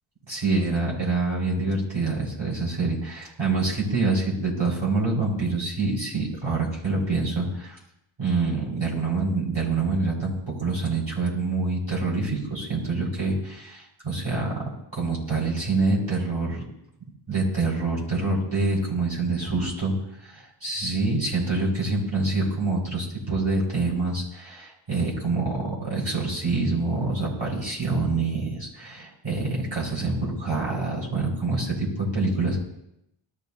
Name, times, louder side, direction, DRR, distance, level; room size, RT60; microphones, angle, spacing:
voice 1, 0.3-7.8 8.2-14.6 14.9-16.6 17.3-19.9 20.2-32.6, right 3 dB, 60° right, -5 dB, 5.5 m, -26 dB
19.0 x 13.0 x 2.9 m, 0.82 s
wide cardioid pair, 50°, 49 cm